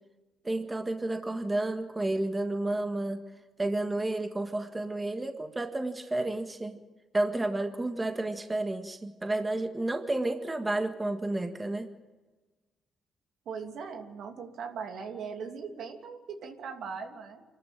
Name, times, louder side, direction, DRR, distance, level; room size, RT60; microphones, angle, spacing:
voice 1, 0.4-3.2 3.6-6.8 7.1-11.9, right 2 dB, 20° right, 5 dB, 1.7 m, -31 dB
voice 2, 13.4-17.4, right 6 dB, 70° right, 3 dB, 2.9 m, -39 dB
26.0 x 13.5 x 9.1 m, 1.3 s
cardioid pair, 90°, 0 cm